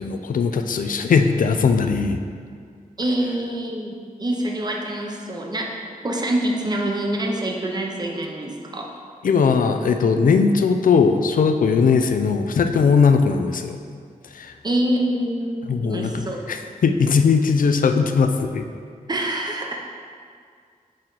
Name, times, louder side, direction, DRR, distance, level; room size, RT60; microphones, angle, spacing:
voice 1, 0.0-2.2 9.2-13.8 14.3-14.5 15.7-18.7, left 5 dB, 70° left, 7 dB, 0.4 m, -19 dB
voice 2, 3.0-5.7 6.0-8.9 14.6-16.4 19.1-19.8, right 1 dB, 30° right, 0 dB, 0.7 m, -25 dB
6.3 x 4.3 x 3.9 m, 2.2 s
wide cardioid pair, 125°, 15 cm